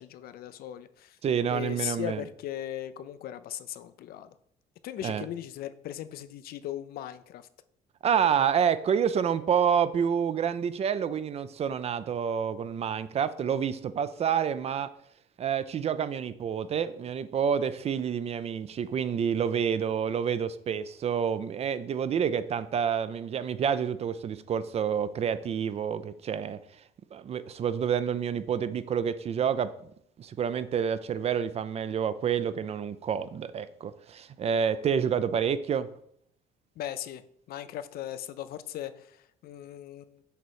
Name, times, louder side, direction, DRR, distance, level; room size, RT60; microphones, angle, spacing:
voice 1, 0.0-1.2 1.5-4.3 4.8-7.5 36.8-40.2, left 11 dB, 65° left, 13 dB, 0.4 m, -38 dB
voice 2, 1.2-2.2 5.0-5.2 8.0-14.9 15.4-26.6 27.1-29.7 30.2-35.9, right 7 dB, 40° right, 14 dB, 0.4 m, -28 dB
6.6 x 3.1 x 4.6 m, 0.68 s
cardioid pair, 110°, 17 cm